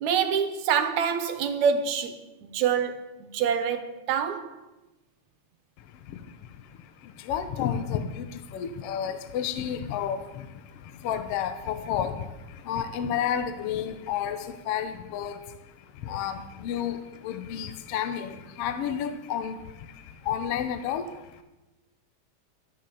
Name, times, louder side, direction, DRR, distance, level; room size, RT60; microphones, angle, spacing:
voice 1, 0.0-4.5, right 7 dB, 75° right, 2.3 m, -26 dB
voice 2, 5.8-21.4, left 8 dB, 70° left, 1.6 m, -32 dB
12.5 x 10.5 x 7.0 m
omnidirectional pair, 3.5 m